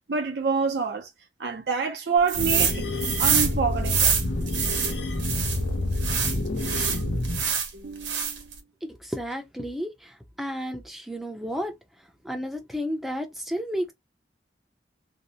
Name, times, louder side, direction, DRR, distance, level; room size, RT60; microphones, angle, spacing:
voice 1, 0.1-1.1 1.4-2.8 3.2-4.1 7.7-8.5, right 5 dB, 65° right, 0.4 m, -27 dB
sound 1, 2.3-7.5, left 1 dB, 75° left, 0.6 m, -28 dB
sound 2, 2.3-2.7 3.0-5.6 6.0-7.7 8.0-8.5, right 7 dB, 80° right, 0.8 m, -25 dB
voice 2, 8.9-11.7 12.2-13.9, equal, ahead, 0.4 m, -32 dB
2.7 x 2.0 x 2.7 m
head